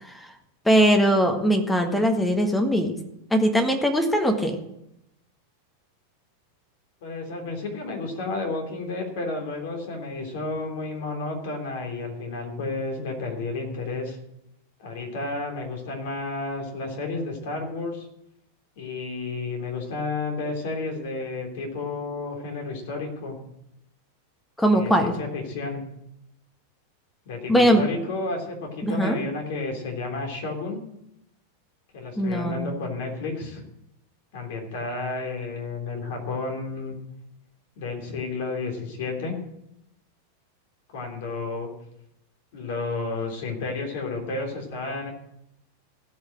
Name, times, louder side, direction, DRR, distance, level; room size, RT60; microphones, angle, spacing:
voice 1, 0.6-2.9 3.3-4.6 24.6-25.2 27.5-27.8 28.8-29.2 32.2-32.7, equal, 5° left, 5 dB, 1.6 m, -20 dB
voice 2, 7.0-14.2 14.8-18.1 18.8-23.4 24.7-25.8 27.2-30.8 31.9-33.6 34.3-37.0 37.8-39.4 40.9-41.7 42.5-45.1, left 3 dB, 50° left, 2 dB, 3.3 m, -31 dB
16.5 x 5.7 x 7.6 m, 0.81 s
figure-of-eight pair, 90°, 0 cm